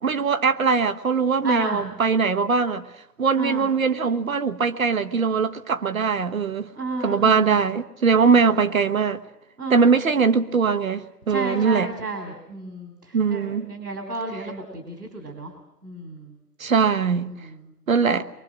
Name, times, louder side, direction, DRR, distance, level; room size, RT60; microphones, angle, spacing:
voice 1, 0.0-2.9 3.2-6.7 7.0-9.2 9.7-11.9 13.1-13.7 16.6-17.3 17.9-18.3, right 5 dB, 55° right, 1.3 m, -21 dB
voice 2, 1.4-1.9 3.3-3.7 6.7-7.6 8.2-8.6 9.6-10.1 11.3-15.5 15.8-16.3 17.3-17.6, right 2 dB, 75° right, 3.7 m, -32 dB
25.0 x 24.0 x 6.2 m
figure-of-eight pair, 140°, 48 cm